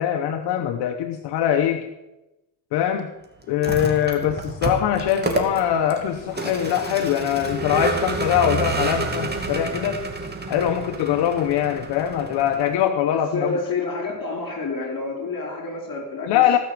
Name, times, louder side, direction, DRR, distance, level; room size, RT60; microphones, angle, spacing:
voice 1, 0.0-1.9 2.7-3.1 3.5-10.0 10.5-13.5 16.3-16.6, left 10 dB, 85° left, 6 dB, 0.9 m, -22 dB
Vehicle, 3.5-12.9, right 3 dB, 25° right, 2.4 m, -29 dB
voice 2, 13.1-16.6, left 3 dB, 50° left, 1 dB, 5.0 m, -29 dB
17.0 x 6.2 x 7.5 m, 0.97 s
cardioid pair, 85°, 40 cm